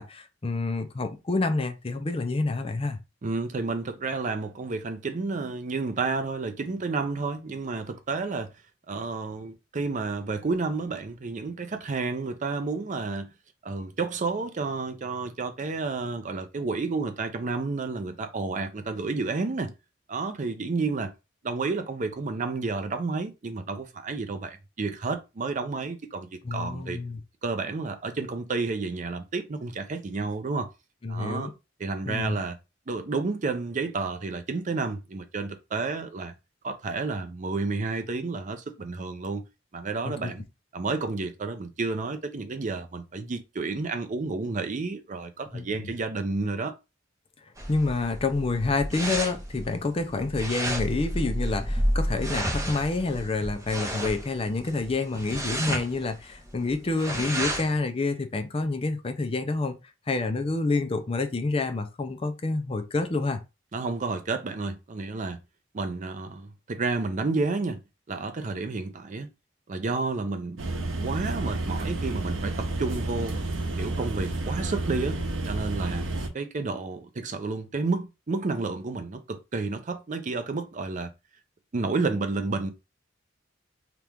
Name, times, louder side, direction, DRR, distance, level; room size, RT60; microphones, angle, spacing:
voice 1, 0.0-3.0 26.4-27.2 31.0-31.5 32.1-32.4 40.0-40.3 45.5-45.9 47.7-59.8 60.1-63.4, left 3 dB, 30° left, 0.5 m, -28 dB
voice 2, 3.2-8.5 8.9-13.3 13.6-19.7 20.1-21.1 21.4-27.0 27.4-30.7 31.1-31.5 31.8-32.6 32.9-36.3 36.6-39.4 39.7-40.4 40.7-46.7 63.7-65.4 65.7-67.8 68.1-69.3 69.7-70.6 70.9-73.4 73.8-76.1 76.3-81.1 81.7-82.7, right 3 dB, 40° right, 0.5 m, -31 dB
sound 1, 47.6-57.8, right 1 dB, 15° right, 0.8 m, -31 dB
sound 2, 70.6-76.3, right 2 dB, 80° right, 0.7 m, -30 dB
2.9 x 2.4 x 3.4 m
head